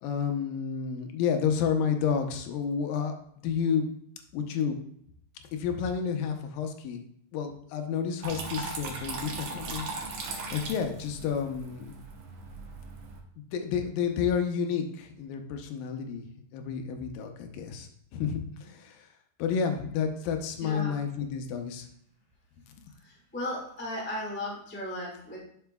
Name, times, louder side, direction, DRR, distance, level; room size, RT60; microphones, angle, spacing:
voice 1, 0.0-3.2 3.4-3.9 4.3-4.8 5.5-7.0 7.3-10.2 10.5-11.9 13.5-16.3 16.5-19.1 19.4-21.9, left 7 dB, 90° left, 5 dB, 2.5 m, -30 dB
Water tap faucet / Trickle dribble, 8.2-13.2, right 3 dB, 65° right, 1.9 m, -38 dB
voice 2, 20.6-20.9 23.3-25.4, left 1 dB, 10° left, -4 dB, 0.5 m, -35 dB
10.5 x 5.9 x 2.3 m, 0.69 s
omnidirectional pair, 3.9 m